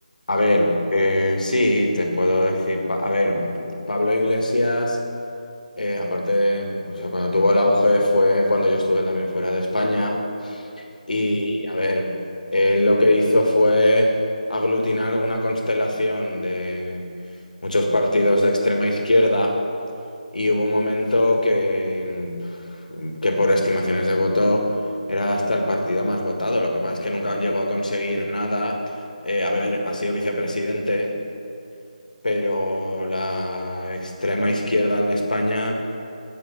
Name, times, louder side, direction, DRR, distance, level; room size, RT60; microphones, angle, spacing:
voice 1, 0.3-5.0 5.8-12.1 12.5-14.1 14.5-17.1 17.6-19.6 20.3-24.8 25.1-28.8 29.2-31.1 32.2-35.8, left 1 dB, 75° left, 2 dB, 1.7 m, -22 dB
7.9 x 7.6 x 7.0 m, 2.5 s
figure-of-eight pair, 160°, 4 cm